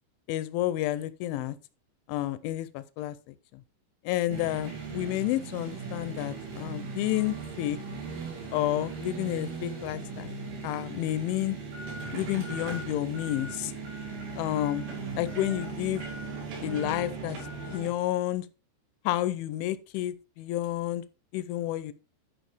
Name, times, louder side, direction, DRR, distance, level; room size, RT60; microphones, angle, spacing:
voice 1, 0.3-1.6 2.1-3.6 4.1-7.8 8.5-10.4 10.6-11.6 12.1-13.7 14.4-14.8 15.2-16.0 16.6-17.4 17.6-18.5 19.1-21.0 21.3-21.9, left 14 dB, 85° left, 2.9 m, -30 dB
sound 1, 4.3-17.9, right 4 dB, 85° right, 5.2 m, -38 dB
11.0 x 5.8 x 3.4 m
omnidirectional pair, 5.4 m